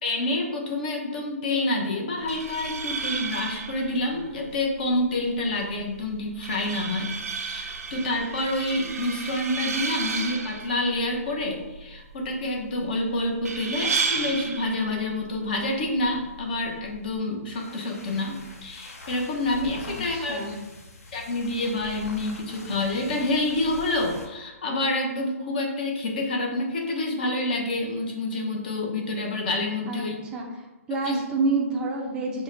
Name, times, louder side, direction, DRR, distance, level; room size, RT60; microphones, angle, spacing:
voice 1, 0.0-20.6 21.1-30.2 30.9-31.2, left 2 dB, 40° left, 1 dB, 0.7 m, -28 dB
sound 1, 2.2-17.2, right 5 dB, 90° right, 0.6 m, -34 dB
sound 2, 17.3-24.3, left 1 dB, 80° left, 0.8 m, -43 dB
voice 2, 19.9-20.6 29.9-30.0 30.3-30.4 30.9-32.4, right 3 dB, 10° right, -1 dB, 0.5 m, -28 dB
4.9 x 2.1 x 3.8 m, 1.1 s
hypercardioid pair, 165°, 8 cm